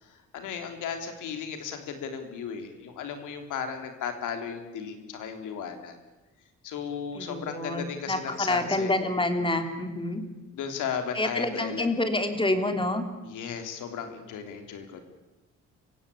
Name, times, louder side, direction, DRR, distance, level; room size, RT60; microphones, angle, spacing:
voice 1, 0.0-6.0 6.6-8.9 10.5-11.9 13.2-15.0, left 7 dB, 85° left, 7 dB, 3.4 m, -35 dB
voice 2, 7.1-10.2 11.1-13.0, left 2 dB, 15° left, 7 dB, 3.2 m, -27 dB
24.5 x 16.5 x 8.7 m, 1.1 s
cardioid pair, 90°, 30 cm